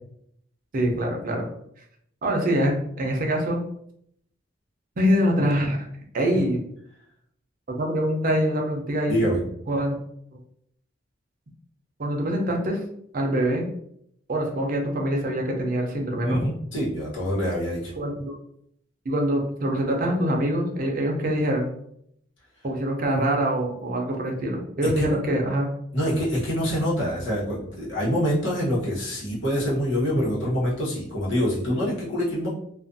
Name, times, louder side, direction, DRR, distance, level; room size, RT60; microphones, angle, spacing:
voice 1, 0.7-1.5 2.2-3.6 5.0-5.8 6.1-6.6 7.7-9.2 9.7-9.9 12.0-12.8 13.1-13.7 14.3-16.4 18.0-18.3 19.1-21.7 22.6-25.7 26.0-26.1, equal, 45° right, 1 dB, 0.5 m, -24 dB
voice 2, 9.1-9.4 16.2-17.9 25.0-25.1 25.9-32.5, equal, 70° left, -6 dB, 1.1 m, -25 dB
2.4 x 2.4 x 2.5 m, 0.71 s
head